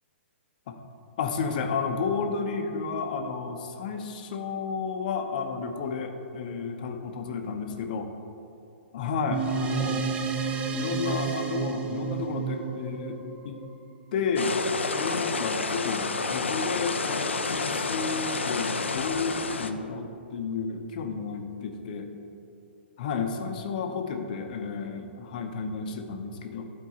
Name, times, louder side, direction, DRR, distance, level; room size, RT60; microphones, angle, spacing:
voice 1, 1.2-8.1 8.9-10.1 10.7-13.2 13.4-13.6 14.1-14.5 14.9-22.1 23.0-26.6, left 5 dB, 45° left, 5 dB, 0.7 m, -32 dB
sound 1, 9.3-14.1, right 6 dB, 15° right, 0.5 m, -31 dB
sound 2, 14.4-19.7, left 4 dB, 75° left, 0.5 m, -29 dB
11.5 x 4.5 x 4.1 m, 2.7 s
figure-of-eight pair, 115°, 7 cm